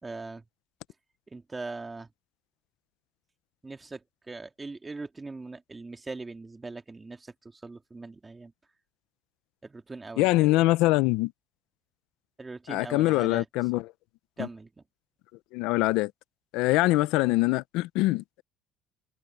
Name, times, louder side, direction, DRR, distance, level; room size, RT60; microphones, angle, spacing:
voice 1, 0.0-0.4 1.3-2.1 3.6-8.5 9.6-10.5 12.4-13.5 14.4-14.8, right 3 dB, 15° right, 2.3 m, -41 dB
voice 2, 10.2-11.3 12.7-13.9 14.4-14.5 15.5-16.1 16.5-18.4, left 19 dB, 80° left, 0.7 m, -24 dB
open air
cardioid pair, 115°, 0 cm